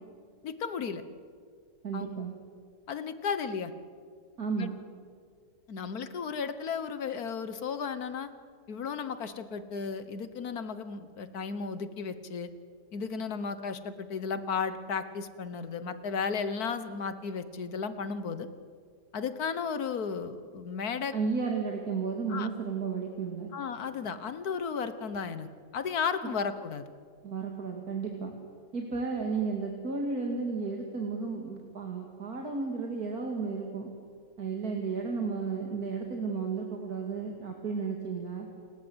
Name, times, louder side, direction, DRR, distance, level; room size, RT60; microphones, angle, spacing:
voice 1, 0.4-1.0 1.9-2.1 2.9-3.7 4.5-4.7 5.7-8.3 8.7-12.5 12.9-18.5 19.1-21.1 22.3-22.5 23.5-25.5 25.7-26.9, left 5 dB, 65° left, 12 dB, 1.6 m, -34 dB
voice 2, 1.8-2.3 4.4-4.8 21.1-23.5 27.2-28.3 28.7-33.9 34.4-38.5, right 5 dB, 60° right, 1 dB, 2.7 m, -33 dB
29.5 x 19.5 x 8.0 m, 2.1 s
omnidirectional pair, 1.8 m